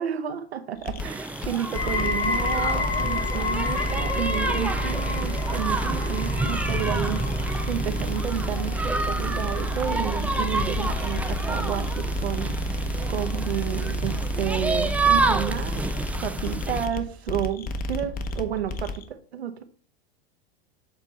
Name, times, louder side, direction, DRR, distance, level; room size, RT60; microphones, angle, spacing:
voice 1, 0.0-7.3 7.7-12.7 13.1-15.9 16.2-19.6, right 10 dB, 90° right, 8 dB, 1.0 m, -31 dB
sound 1, 0.8-19.0, equal, 30° left, 0.9 m, -30 dB
sound 2, 1.0-16.9, right 3 dB, 5° right, 0.3 m, -30 dB
sound 3, 1.7-12.8 13.2-13.7 14.4-14.5, left 4 dB, 80° left, 2.4 m, -32 dB
7.3 x 3.6 x 4.1 m, 0.41 s
hypercardioid pair, 100°, 31 cm